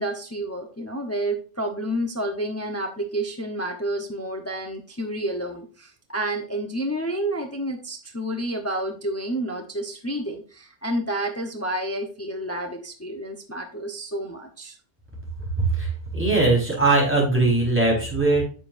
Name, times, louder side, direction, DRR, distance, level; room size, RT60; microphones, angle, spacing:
voice 1, 0.0-14.8, right 1 dB, 15° left, 3 dB, 0.9 m, -30 dB
voice 2, 15.6-18.4, right 2 dB, 10° right, -3 dB, 4.5 m, -20 dB
9.6 x 7.0 x 2.6 m, 0.38 s
omnidirectional pair, 1.3 m